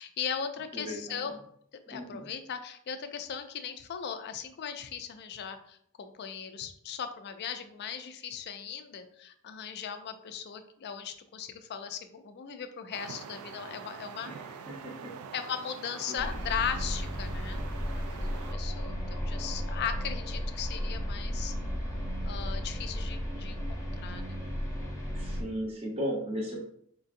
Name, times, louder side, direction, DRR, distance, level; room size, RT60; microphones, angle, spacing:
voice 1, 0.0-1.4 1.9-14.3 15.3-17.6 17.9-21.5 22.2-24.4, left 7 dB, 50° left, 9 dB, 0.4 m, -38 dB
voice 2, 0.7-1.3 1.9-2.3 14.3-15.1 16.1-16.2 25.1-26.6, equal, 25° right, -3 dB, 0.7 m, -36 dB
sound 1, 12.9-18.5, right 6 dB, 70° right, 0.3 m, -45 dB
sound 2, 16.2-25.4, equal, 15° left, 0.7 m, -34 dB
4.4 x 2.6 x 2.5 m, 0.68 s
head